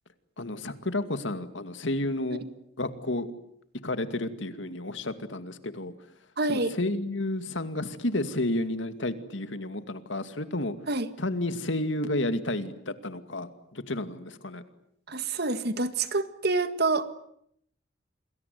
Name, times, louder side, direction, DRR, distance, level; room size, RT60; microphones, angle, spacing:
voice 1, 0.4-2.4 2.8-3.3 3.8-5.9 6.5-10.7 11.2-14.6, left 1 dB, 70° left, 10 dB, 2.3 m, -31 dB
voice 2, 6.4-6.7 10.9-11.1 15.1-17.0, right 3 dB, 55° right, 11 dB, 1.9 m, -27 dB
28.5 x 21.5 x 9.4 m, 0.72 s
head